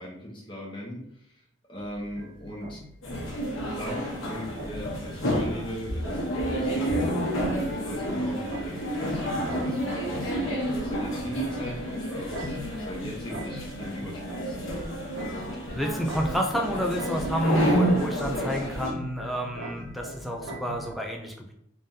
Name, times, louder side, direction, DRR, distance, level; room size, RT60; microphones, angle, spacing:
voice 1, 0.0-1.3 1.7-2.8 3.6-7.0 7.5-14.6, equal, 25° left, -3 dB, 1.0 m, -39 dB
sound 1, 1.8-20.9, equal, 50° right, 1.2 m, -42 dB
sound 2, 3.0-18.9, equal, 80° left, 1.0 m, -30 dB
voice 2, 15.7-21.5, equal, ahead, 1 dB, 0.4 m, -29 dB
3.7 x 3.4 x 2.7 m, 0.73 s
head